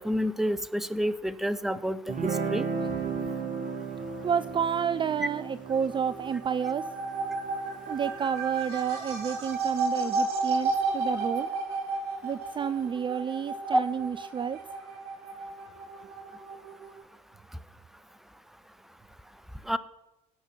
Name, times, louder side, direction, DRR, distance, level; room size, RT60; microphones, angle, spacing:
voice 1, 0.0-2.6 13.7-13.8 19.7-19.8, equal, ahead, 15 dB, 0.8 m, -28 dB
Guitar, 2.1-9.2, right 5 dB, 50° right, 1.8 m, -35 dB
voice 2, 4.2-6.9 7.9-11.5 12.2-14.6, right 7 dB, 30° right, 15 dB, 0.4 m, -30 dB
sound 1, 5.7-17.0, right 3 dB, 65° right, 2.4 m, -33 dB
16.0 x 5.7 x 6.2 m, 0.95 s
figure-of-eight pair, 50°, 18 cm